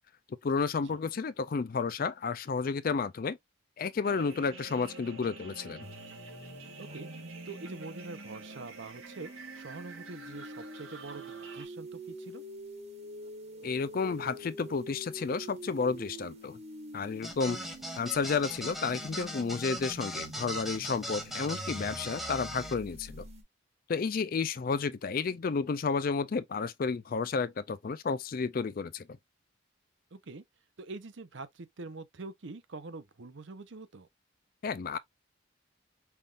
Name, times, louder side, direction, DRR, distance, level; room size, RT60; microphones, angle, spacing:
voice 1, 0.4-3.4 3.8-5.9 13.6-16.6 16.9-17.6 18.0-23.3 23.9-29.1 34.6-35.0, left 5 dB, 45° left, 0.4 m, -31 dB
sound 1, 4.0-11.6, right 3 dB, 90° right, 1.5 m, -48 dB
sound 2, 5.8-23.4, right 1 dB, 35° right, 1.3 m, -46 dB
voice 2, 6.8-7.1 7.5-12.4 17.4-17.7 30.1-30.4 30.8-34.1, right 3 dB, 65° right, 0.7 m, -45 dB
sound 3, 17.2-22.7, equal, ahead, 0.9 m, -39 dB
5.7 x 3.5 x 2.5 m
head